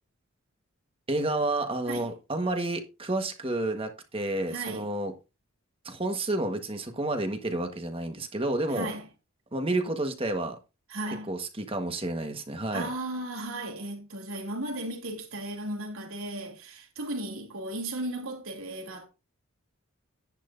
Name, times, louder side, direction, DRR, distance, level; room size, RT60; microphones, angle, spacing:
voice 1, 1.1-5.1 5.8-8.9 9.5-10.5 11.3-12.9, right 2 dB, 25° right, 1.4 m, -30 dB
voice 2, 4.5-4.9 8.7-9.1 10.9-11.3 12.7-19.1, right 1 dB, 75° right, 2.9 m, -35 dB
10.5 x 10.5 x 2.7 m
head